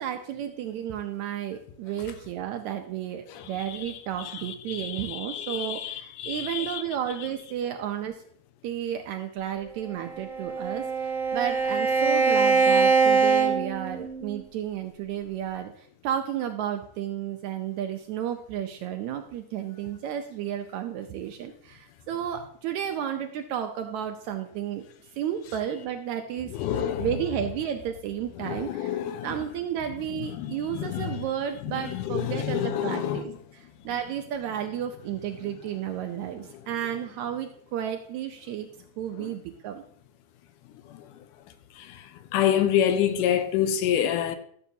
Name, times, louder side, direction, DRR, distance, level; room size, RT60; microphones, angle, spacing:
voice 1, 0.0-8.2 8.6-24.8 25.2-26.5 27.0-38.7 39.0-39.8, right 10 dB, 75° right, 1.8 m, -32 dB
voice 2, 3.3-7.2 26.5-27.3 28.4-29.5 30.1-33.4 35.4-35.5 35.8-35.9 36.3-36.8 39.2-39.4 40.9-41.0 41.8-42.0 42.3-44.4, left 10 dB, 85° left, 2.2 m, -29 dB
Bowed string instrument, 9.9-14.4, right 5 dB, 15° left, 1.8 m, -23 dB
13.5 x 7.1 x 2.7 m
omnidirectional pair, 3.7 m